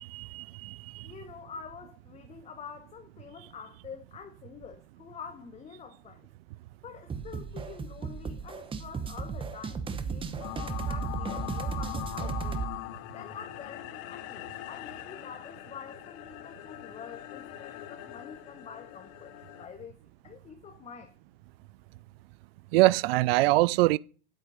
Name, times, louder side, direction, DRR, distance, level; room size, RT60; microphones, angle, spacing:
voice 1, 0.0-1.1 22.7-24.0, right 20 dB, 65° right, 0.4 m, -24 dB
voice 2, 1.0-6.3 6.8-12.6 13.1-20.0 20.2-21.1, left 6 dB, 20° left, 0.9 m, -46 dB
sound 1, 7.1-12.7, right 5 dB, 15° right, 0.9 m, -35 dB
sound 2, 10.4-19.7, left 16 dB, 45° left, 0.7 m, -41 dB
8.2 x 8.0 x 5.4 m
supercardioid pair, 135°, 33 cm